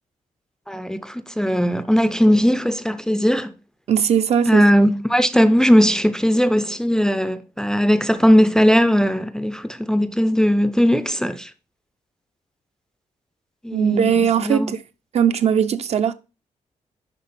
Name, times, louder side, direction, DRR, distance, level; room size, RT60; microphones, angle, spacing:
voice 1, 0.7-3.5 4.5-11.5 13.6-14.1 14.4-14.7, equal, 5° left, 0.4 m, -18 dB
voice 2, 3.9-4.6 13.7-14.8 15.1-16.1, right 8 dB, 55° right, 0.6 m, -19 dB
10.5 x 3.6 x 4.1 m
wide cardioid pair, 130°, 13 cm